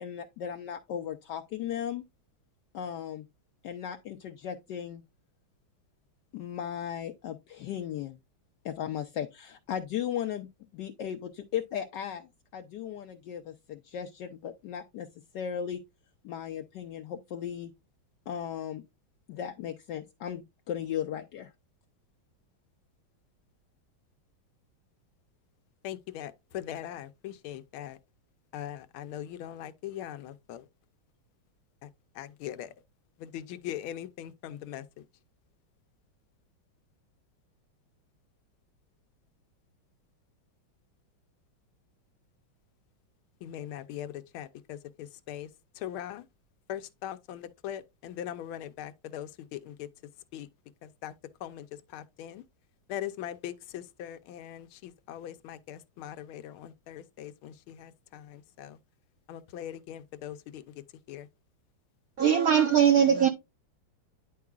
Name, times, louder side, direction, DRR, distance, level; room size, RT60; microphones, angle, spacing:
voice 1, 0.0-2.0 2.7-3.2 3.6-5.0 6.3-8.2 8.6-10.5 10.7-15.1 15.3-15.8 16.2-17.7 18.3-18.8 19.3-21.5, left 9 dB, 75° left, 1.1 m, -36 dB
voice 2, 25.8-28.0 28.5-30.6 32.2-32.7 33.2-34.8 43.4-44.8 45.3-45.5 45.8-46.2 46.7-49.9 50.3-50.5 51.0-51.1 51.4-51.6 51.9-52.4 52.9-58.8 59.3-60.6 61.1-61.3, left 11 dB, 90° left, 1.5 m, -40 dB
voice 3, 62.2-63.3, right 8 dB, 60° right, 0.9 m, -21 dB
10.0 x 4.7 x 2.3 m
omnidirectional pair, 2.2 m